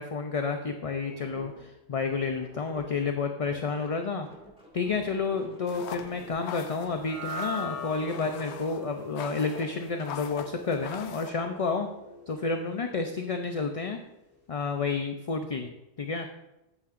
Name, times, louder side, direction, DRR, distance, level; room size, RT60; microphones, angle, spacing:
voice 1, 0.0-4.3 4.7-11.9 12.3-14.0 14.5-15.7 16.0-16.3, left 4 dB, 40° left, 5 dB, 0.5 m, -30 dB
sound 1, 1.0-3.1 3.4-6.3, equal, 5° right, 2.0 m, -49 dB
sound 2, 5.7-11.3, left 9 dB, 90° left, 0.9 m, -43 dB
sound 3, 6.8-13.3, left 1 dB, 20° left, 2.9 m, -41 dB
12.0 x 8.5 x 2.5 m, 0.96 s
omnidirectional pair, 1.1 m